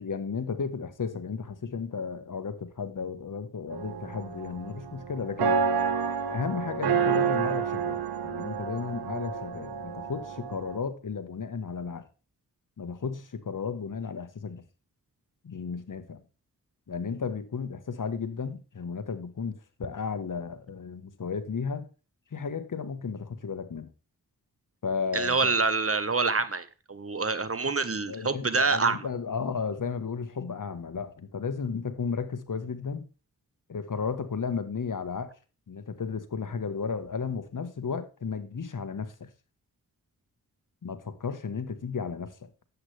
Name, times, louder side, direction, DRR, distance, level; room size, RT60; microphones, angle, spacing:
voice 1, 0.0-5.6 6.3-12.0 12.8-14.6 15.4-16.2 16.9-21.8 22.3-23.9 24.8-25.5 28.1-33.1 33.7-35.3 35.7-39.3 40.8-42.3, left 5 dB, 55° left, 1.4 m, -34 dB
sound 1, 3.7-10.8, right 6 dB, 85° right, 1.2 m, -29 dB
voice 2, 25.1-29.1, right 4 dB, 35° right, 1.3 m, -26 dB
11.0 x 8.3 x 3.4 m
supercardioid pair, 40°, 37 cm